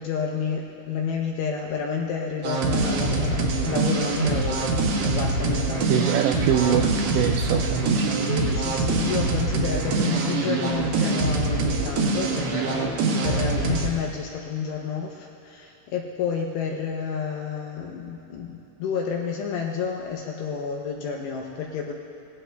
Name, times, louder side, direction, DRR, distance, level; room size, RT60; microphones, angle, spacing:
voice 1, 0.0-4.7 5.0-6.1 8.3-21.9, left 6 dB, 80° left, 0 dB, 2.5 m, -30 dB
sound 1, 2.4-13.9, right 3 dB, 65° right, 2.9 m, -24 dB
voice 2, 5.9-8.3, right 9 dB, 85° right, 4 dB, 2.5 m, -24 dB
24.0 x 18.0 x 2.3 m, 2.8 s
omnidirectional pair, 5.5 m